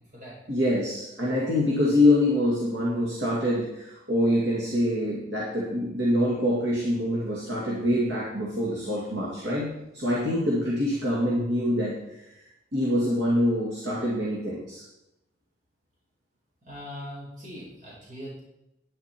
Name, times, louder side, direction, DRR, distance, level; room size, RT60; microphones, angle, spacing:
voice 1, 0.5-12.3 12.7-14.8, left 1 dB, 70° right, -5 dB, 2.3 m, -25 dB
voice 2, 16.6-18.4, equal, 45° right, -6 dB, 4.8 m, -41 dB
11.0 x 10.0 x 4.5 m, 0.90 s
head